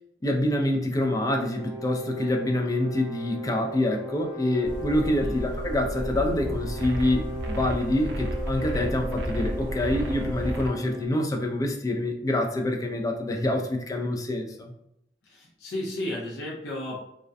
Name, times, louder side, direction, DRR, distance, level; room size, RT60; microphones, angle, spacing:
voice 1, 0.2-14.7, left 1 dB, 20° left, 2 dB, 0.3 m, -26 dB
sound 1, 1.2-11.1, right 1 dB, 25° right, 0.6 m, -38 dB
sound 2, 4.6-10.7, equal, 45° right, 1.0 m, -34 dB
sound 3, 6.8-10.7, right 1 dB, 75° right, 0.4 m, -35 dB
voice 2, 15.3-17.0, left 1 dB, 80° left, -4 dB, 0.6 m, -33 dB
2.4 x 2.1 x 2.5 m, 0.77 s
head